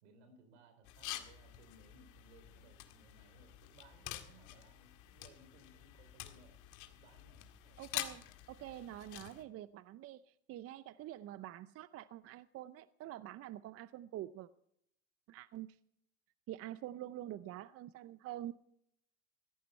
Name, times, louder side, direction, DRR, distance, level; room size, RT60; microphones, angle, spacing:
voice 1, 0.0-6.6 6.9-7.9, right 3 dB, 85° right, 8 dB, 4.1 m, -63 dB
sound 1, 0.8-9.4, left 14 dB, 65° left, 1.9 m, -48 dB
voice 2, 7.8-14.5 15.3-15.8 16.5-18.5, right 13 dB, 45° right, 16 dB, 0.6 m, -46 dB
16.5 x 14.0 x 4.4 m, 0.73 s
supercardioid pair, 100°, 33 cm